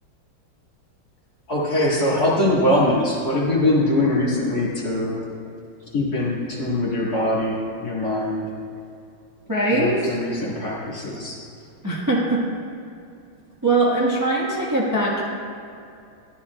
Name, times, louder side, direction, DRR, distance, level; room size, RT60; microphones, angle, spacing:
voice 1, 1.5-5.2 5.9-8.4 9.8-11.4, left 1 dB, 50° left, -6 dB, 2.4 m, -22 dB
voice 2, 9.5-10.2 11.8-12.4 13.6-15.2, right 2 dB, 10° right, -5 dB, 1.0 m, -21 dB
14.0 x 11.5 x 2.3 m, 2.5 s
omnidirectional pair, 2.3 m